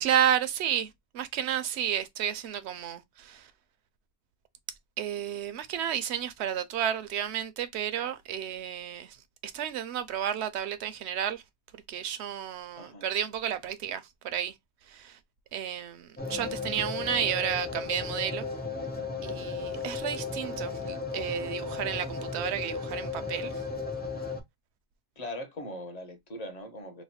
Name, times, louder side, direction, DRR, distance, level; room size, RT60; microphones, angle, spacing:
voice 1, 0.0-3.5 5.0-9.2 9.4-11.4 11.7-14.5 14.9-15.2 15.5-18.5 19.2-23.5, right 10 dB, 75° right, 0.9 m, -32 dB
voice 2, 12.8-13.1 25.2-27.0, left 1 dB, 40° left, 0.8 m, -40 dB
sound 1, 16.2-24.4, left 4 dB, 15° left, 0.4 m, -35 dB
3.1 x 2.1 x 4.1 m
omnidirectional pair, 1.2 m